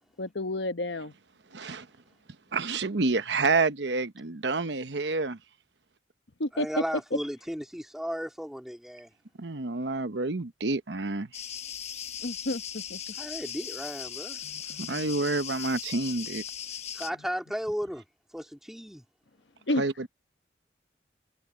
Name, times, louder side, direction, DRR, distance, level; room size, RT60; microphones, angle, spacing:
voice 1, 0.2-1.1 6.4-6.7 12.2-13.0 14.4-15.1 19.7-19.8, left 1 dB, 75° left, 1.1 m, -31 dB
voice 2, 1.5-1.9 2.5-5.4 9.4-11.3 14.8-16.4 19.8-20.1, right 3 dB, 75° right, 1.0 m, -28 dB
voice 3, 6.5-9.1 13.1-14.4 16.9-18.0 18.3-19.0, equal, ahead, 2.2 m, -35 dB
sound 1, 11.3-17.1, left 9 dB, 35° left, 1.1 m, -38 dB
head